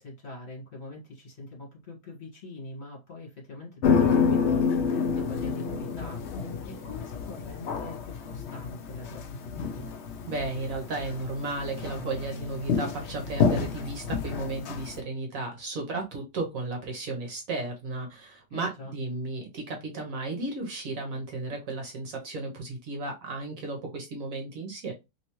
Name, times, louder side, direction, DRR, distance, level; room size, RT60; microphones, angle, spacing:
voice 1, 0.0-9.9 18.5-18.9, left 2 dB, 40° left, 1.7 m, -44 dB
sound 1, 3.8-15.0, left 5 dB, 65° left, 0.6 m, -29 dB
voice 2, 10.3-24.9, right 2 dB, 60° right, 1.1 m, -34 dB
3.2 x 2.9 x 2.9 m
omnidirectional pair, 1.8 m